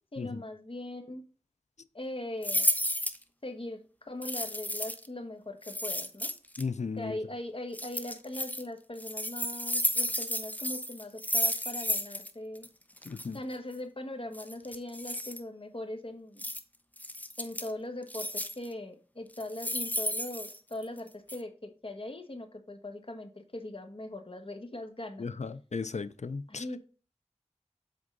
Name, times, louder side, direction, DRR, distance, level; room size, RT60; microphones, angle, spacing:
voice 1, 0.1-1.2 1.9-2.7 3.4-6.3 7.0-12.7 13.3-16.5 17.4-25.3 26.5-26.8, left 1 dB, 50° left, 1.2 m, -40 dB
sound 1, 2.4-3.2 4.2-5.1 5.6-6.6 7.7-8.6 9.0-12.3 12.6-12.7 13.0-13.3 14.3-15.4 16.4-16.6 17.0-17.7 18.1-18.7 19.3-21.0 21.3-21.4, left 1 dB, 15° left, 0.7 m, -32 dB
voice 2, 6.6-7.2 13.1-13.4 25.2-26.6, left 4 dB, 80° left, 0.5 m, -35 dB
7.8 x 3.6 x 5.3 m
wide cardioid pair, 45°, 12 cm